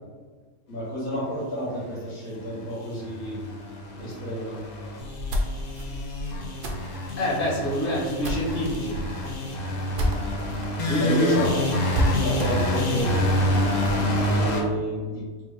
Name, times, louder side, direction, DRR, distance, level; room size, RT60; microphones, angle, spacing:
voice 1, 0.7-3.4 3.9-4.6 11.0-11.6 12.2-13.2 14.1-15.3, equal, 80° left, -8 dB, 1.5 m, -30 dB
sound 1, 2.2-14.6, left 1 dB, 60° left, 0.4 m, -28 dB
sound 2, 5.0-10.7 11.0-11.1 11.4-11.5 11.9-14.0, equal, 60° right, 0.5 m, -31 dB
voice 2, 7.2-9.0 10.9-11.4, left 1 dB, 45° left, -6 dB, 1.0 m, -26 dB
3.6 x 2.5 x 3.3 m, 1.4 s
omnidirectional pair, 1.4 m